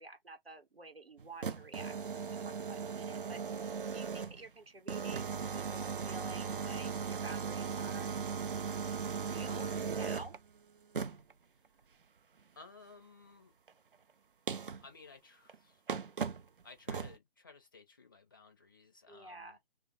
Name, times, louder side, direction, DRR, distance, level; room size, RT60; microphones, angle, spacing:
voice 1, 0.0-2.0 2.3-3.6 3.9-8.1 9.1-10.4 19.1-19.6, right 2 dB, 90° right, 1.0 m, -50 dB
sound 1, 1.2-4.5 4.9-10.4 10.9-11.3 13.7-13.8 14.5-14.9 15.5-15.6 15.9-16.5 16.9-17.2, right 6 dB, 65° right, 0.5 m, -38 dB
voice 2, 12.6-13.5 14.8-15.8 16.6-19.6, left 4 dB, 25° left, 0.4 m, -56 dB
3.3 x 2.2 x 2.8 m
figure-of-eight pair, 140°, 29 cm